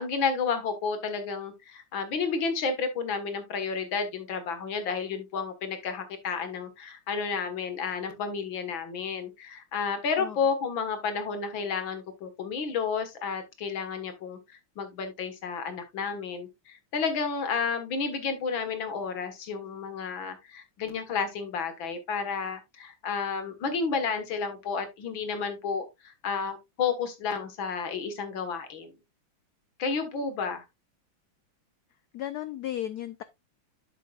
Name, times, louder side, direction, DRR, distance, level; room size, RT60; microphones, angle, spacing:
voice 1, 0.0-14.4 14.8-28.9 29.8-30.6, left 5 dB, 65° left, 2.3 m, -31 dB
voice 2, 32.1-33.2, left 11 dB, 85° left, 0.8 m, -34 dB
9.2 x 7.7 x 2.4 m
omnidirectional pair, 2.3 m